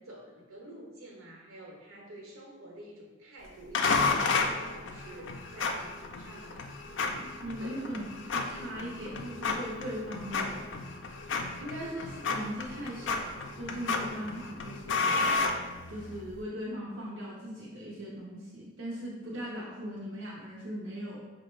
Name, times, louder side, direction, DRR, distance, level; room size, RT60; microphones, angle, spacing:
voice 1, 0.0-6.7 7.6-7.9, right 1 dB, 80° right, -2 dB, 0.9 m, -49 dB
sound 1, 3.7-16.2, left 4 dB, 60° left, 0.3 m, -32 dB
voice 2, 7.1-10.6 11.6-13.3 13.6-15.2 15.9-21.2, equal, 60° right, -7 dB, 0.6 m, -39 dB
5.1 x 2.1 x 3.1 m, 1.3 s
head